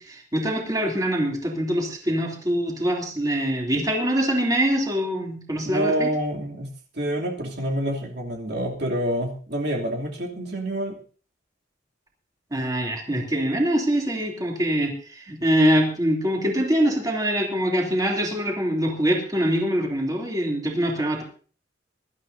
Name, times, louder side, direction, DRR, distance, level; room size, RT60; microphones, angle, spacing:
voice 1, 0.0-6.1 12.5-21.2, equal, 20° right, -1 dB, 3.0 m, -24 dB
voice 2, 5.6-6.7 6.9-11.0, right 1 dB, 60° right, -1 dB, 3.0 m, -27 dB
23.5 x 12.5 x 2.7 m, 0.41 s
head